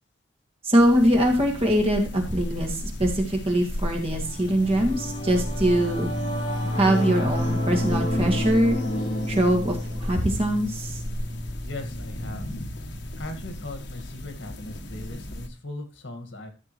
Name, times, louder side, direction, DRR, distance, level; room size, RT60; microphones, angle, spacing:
voice 1, 0.6-6.1 6.7-8.8 9.3-11.0, equal, 30° right, 1 dB, 2.4 m, -22 dB
sound 1, 0.8-15.5, left 1 dB, 65° left, 1.3 m, -36 dB
Singing / Musical instrument, 3.9-13.6, left 1 dB, 40° left, 3.1 m, -30 dB
voice 2, 11.6-12.5 13.2-16.5, left 2 dB, 80° left, 6 dB, 1.9 m, -38 dB
13.5 x 6.7 x 3.2 m, 0.35 s
head